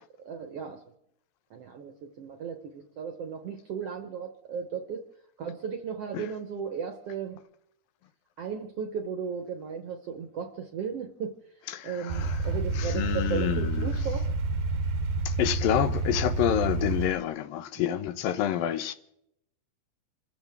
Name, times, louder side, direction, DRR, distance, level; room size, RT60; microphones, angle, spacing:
voice 1, 0.2-0.8 1.5-5.0 5.4-7.4 8.4-11.3 11.8-14.3 17.7-17.9, right 6 dB, 70° right, 1.5 m, -35 dB
voice 2, 11.7-12.3 12.8-13.9 15.4-18.9, left 11 dB, 85° left, 2.6 m, -28 dB
sound 1, 12.1-17.1, right 3 dB, 90° right, 2.8 m, -29 dB
27.5 x 14.0 x 3.5 m
omnidirectional pair, 4.0 m